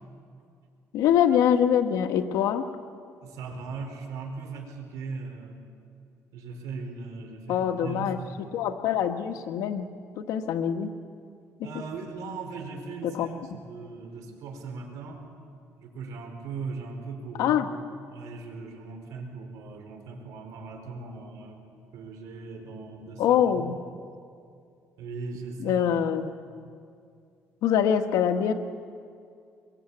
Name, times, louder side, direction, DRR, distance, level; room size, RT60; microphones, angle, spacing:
voice 1, 0.9-2.7 7.5-9.9 10.2-10.9 13.0-13.3 17.4-17.7 23.2-23.8 25.6-26.3 27.6-28.5, left 9 dB, 85° left, 6 dB, 1.4 m, -24 dB
voice 2, 3.2-5.6 6.3-8.3 11.6-15.2 15.8-17.6 18.1-21.6 21.9-23.7 25.0-25.8, right 4 dB, 85° right, 3 dB, 4.5 m, -39 dB
23.5 x 23.5 x 8.5 m, 2.3 s
cardioid pair, 125°, 6 cm